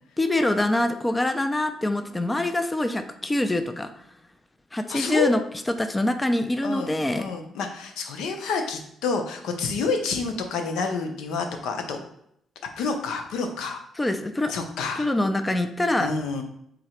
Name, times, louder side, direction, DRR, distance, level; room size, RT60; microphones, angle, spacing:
voice 1, 0.2-3.9 4.7-5.4 5.8-7.3 14.0-14.5 15.0-16.1, left 1 dB, 15° left, 9 dB, 0.4 m, -24 dB
voice 2, 4.9-5.3 6.6-12.0 12.8-13.8 14.5-15.1 16.0-16.4, left 4 dB, 85° left, 5 dB, 0.6 m, -28 dB
3.9 x 2.8 x 4.3 m, 0.72 s
cardioid pair, 90°, 0 cm